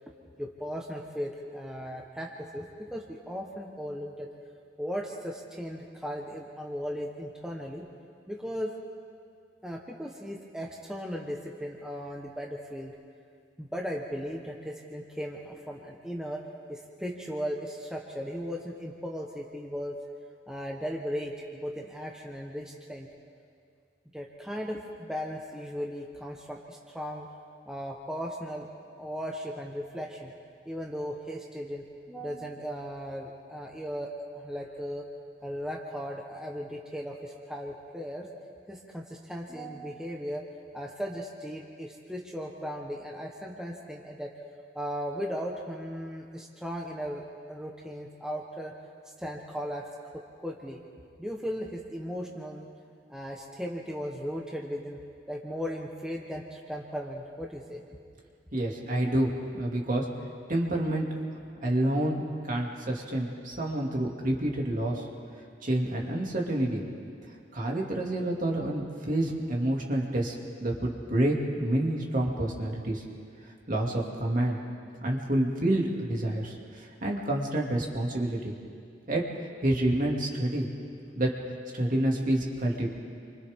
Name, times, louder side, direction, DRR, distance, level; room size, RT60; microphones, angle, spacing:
voice 1, 0.4-4.3 4.8-7.8 8.3-8.7 9.6-12.9 13.6-16.4 16.7-20.0 20.5-23.1 24.1-27.3 27.7-28.7 29.0-30.3 30.6-35.0 35.4-38.3 38.7-40.4 40.7-44.3 44.7-48.7 49.2-49.9 50.4-50.8 51.2-52.7 53.1-55.0 55.3-57.8, equal, 5° right, -1 dB, 1.1 m, -37 dB
voice 2, 58.5-60.1 60.5-61.1 61.6-65.0 65.6-66.8 67.5-70.3 70.6-73.0 73.7-74.6 75.0-78.5 79.1-79.2 79.6-80.7 81.2-81.3 81.7-82.9, right 1 dB, 45° right, -1 dB, 2.6 m, -28 dB
29.0 x 25.0 x 3.7 m, 2.3 s
head